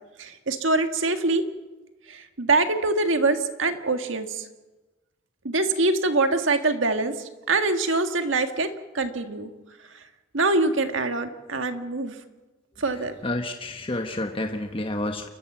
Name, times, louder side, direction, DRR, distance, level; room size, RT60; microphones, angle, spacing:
voice 1, 0.2-1.4 2.1-4.5 5.4-7.1 7.5-8.7 8.9-9.5 10.3-12.2 12.8-13.1, right 3 dB, 70° right, 7 dB, 1.8 m, -24 dB
voice 2, 13.2-15.3, left 1 dB, 25° left, 5 dB, 1.3 m, -29 dB
29.5 x 13.5 x 7.5 m, 1.1 s
head